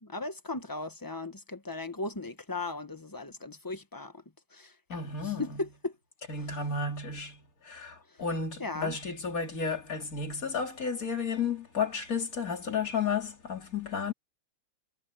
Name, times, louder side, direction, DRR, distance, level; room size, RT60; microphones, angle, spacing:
voice 1, 0.0-4.2 4.5-5.9 6.3-6.6 8.1-8.2 8.6-9.0, left 3 dB, 20° left, 0.6 m, -37 dB
voice 2, 4.9-5.6 6.3-14.1, left 5 dB, 40° left, 3.5 m, -32 dB
omnidirectional pair, 2.3 m